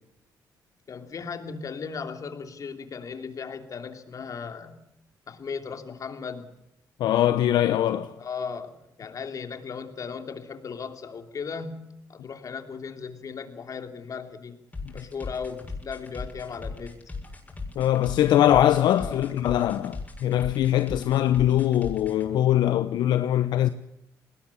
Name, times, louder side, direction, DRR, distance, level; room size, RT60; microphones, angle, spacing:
voice 1, 0.9-4.9 5.3-6.5 8.2-14.7 14.9-17.0 18.9-19.3, left 5 dB, 50° left, 3.0 m, -37 dB
voice 2, 7.0-8.1 14.8-14.9 17.8-23.7, left 12 dB, 80° left, 0.9 m, -22 dB
sound 1, 14.7-22.3, left 3 dB, 20° left, 6.8 m, -38 dB
20.5 x 19.0 x 8.5 m
cardioid pair, 80°, 7 cm